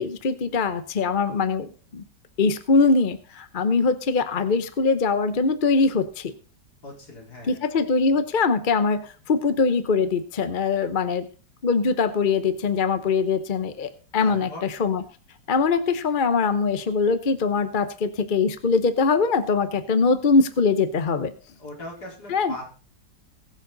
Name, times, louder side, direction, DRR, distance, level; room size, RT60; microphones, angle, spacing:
voice 1, 0.0-2.0 2.4-6.3 7.5-11.3 11.6-15.0 15.5-21.3 22.3-22.5, left 4 dB, 40° left, 11 dB, 0.7 m, -22 dB
voice 2, 6.8-7.6 14.2-14.7 21.6-22.7, left 1 dB, 60° left, -2 dB, 5.0 m, -39 dB
20.0 x 7.0 x 4.0 m, 0.36 s
omnidirectional pair, 1.9 m